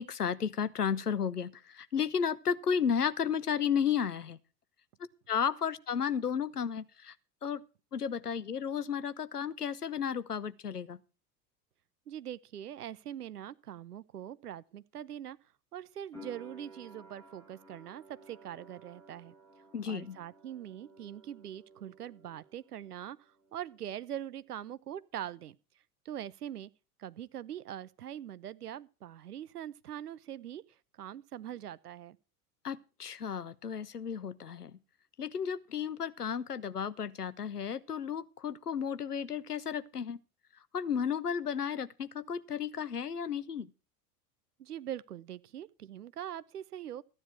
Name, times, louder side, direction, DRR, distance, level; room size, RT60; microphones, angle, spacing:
voice 1, 0.0-4.4 5.3-7.1 7.4-7.6 7.9-11.0 19.7-20.2 32.6-34.7 35.2-40.2 40.7-43.7, left 7 dB, 85° left, 0.8 m, -33 dB
voice 2, 12.1-15.4 15.7-19.3 19.9-23.2 23.5-25.6 26.0-26.7 27.0-30.6 31.0-32.2 44.6-47.0, right 10 dB, 80° right, 0.7 m, -42 dB
sound 1, 16.1-22.9 23.2-24.1, right 1 dB, 10° left, 6.9 m, -55 dB
14.5 x 9.9 x 4.5 m
figure-of-eight pair, 80°, 46 cm